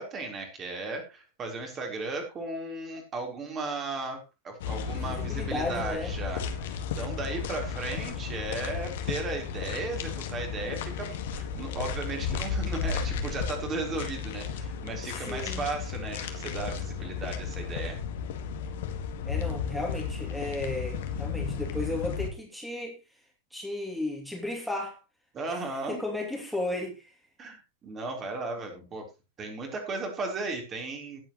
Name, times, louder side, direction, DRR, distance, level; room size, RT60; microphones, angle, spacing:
voice 1, 0.0-18.0 25.3-26.0 27.4-29.0 29.4-31.2, right 3 dB, 25° right, 4.0 m, -36 dB
sound 1, 4.6-22.3, left 6 dB, 55° left, 1.8 m, -34 dB
voice 2, 5.0-6.1 13.2-13.4 15.0-15.6 19.2-23.0 23.5-25.0 25.5-27.1, left 1 dB, ahead, 2.7 m, -34 dB
18.0 x 7.7 x 3.1 m
figure-of-eight pair, 90°, 0 cm